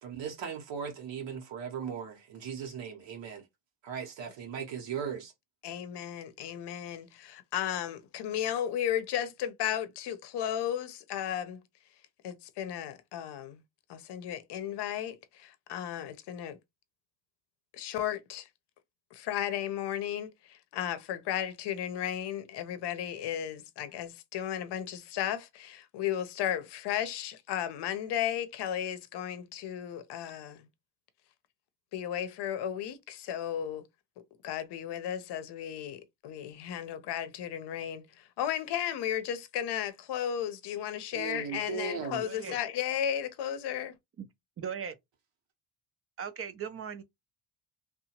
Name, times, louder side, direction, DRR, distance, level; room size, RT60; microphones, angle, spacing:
voice 1, 0.0-3.4 3.8-5.3 41.1-42.2, right 7 dB, 65° right, 0.9 m, -38 dB
voice 2, 5.6-11.6 12.2-13.6 13.9-16.6 17.7-18.5 19.1-30.6 31.9-33.9 34.4-43.9, left 10 dB, 55° left, 0.7 m, -34 dB
voice 3, 42.2-42.6 44.2-44.3 44.6-45.0 46.2-47.0, right 7 dB, 30° right, 0.5 m, -38 dB
2.7 x 2.2 x 2.8 m
supercardioid pair, 75°, 48 cm